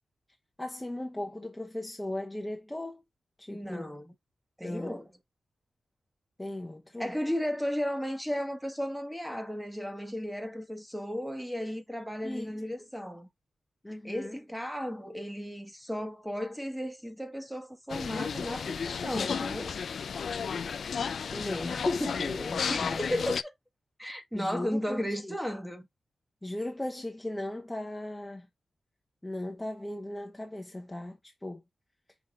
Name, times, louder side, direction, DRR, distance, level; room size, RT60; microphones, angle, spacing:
voice 1, 0.6-3.0 3.4-3.9 4.6-5.0 6.4-7.1 12.2-12.6 13.8-14.4 21.3-23.1 24.3-25.3 26.4-28.5 29.2-31.6, left 1 dB, 10° left, 1.1 m, -37 dB
voice 2, 3.5-4.1 4.6-5.1 7.0-13.3 14.0-19.8 22.7-23.5 24.0-25.8, equal, 5° right, 1.4 m, -34 dB
sound 1, 17.9-23.4, left 6 dB, 70° left, 0.4 m, -33 dB
5.8 x 4.0 x 4.0 m
wide cardioid pair, 110°, 0 cm